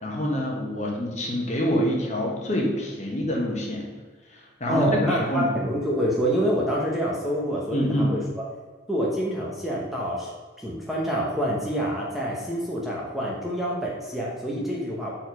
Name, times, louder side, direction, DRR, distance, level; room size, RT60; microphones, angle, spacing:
voice 1, 0.0-3.8 4.6-5.5 7.7-8.1, equal, 40° left, -2 dB, 1.3 m, -26 dB
voice 2, 4.7-8.2 8.9-10.3 10.6-15.1, equal, ahead, -4 dB, 1.0 m, -27 dB
6.4 x 4.4 x 4.8 m, 1.4 s
head